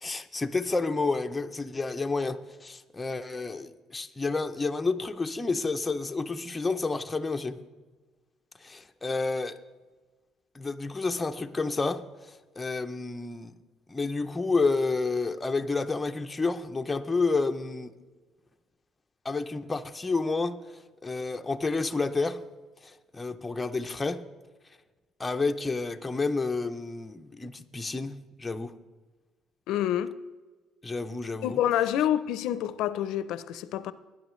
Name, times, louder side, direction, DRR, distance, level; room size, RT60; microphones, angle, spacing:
voice 1, 0.0-7.6 8.6-9.6 10.5-13.5 13.9-17.9 19.2-20.6 21.0-22.4 22.8-24.2 25.2-28.7 30.8-31.6, left 3 dB, 15° left, 0.5 m, -30 dB
voice 2, 29.7-30.2 31.4-33.9, left 11 dB, 80° left, 0.4 m, -27 dB
18.5 x 10.5 x 3.1 m
cardioid pair, 150°, 0 cm